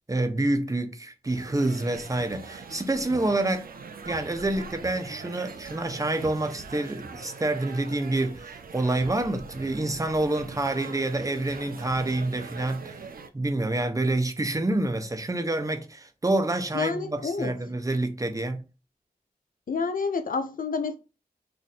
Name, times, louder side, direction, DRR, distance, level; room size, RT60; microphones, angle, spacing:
voice 1, 0.1-3.7 4.0-13.0 13.3-18.6, right 2 dB, 20° right, 0.6 m, -27 dB
sound 1, 1.2-13.3, right 5 dB, 70° right, 0.4 m, -42 dB
voice 2, 16.7-17.5 19.7-21.0, left 4 dB, 65° left, 0.5 m, -29 dB
2.5 x 2.5 x 4.1 m
wide cardioid pair, 55°, 16 cm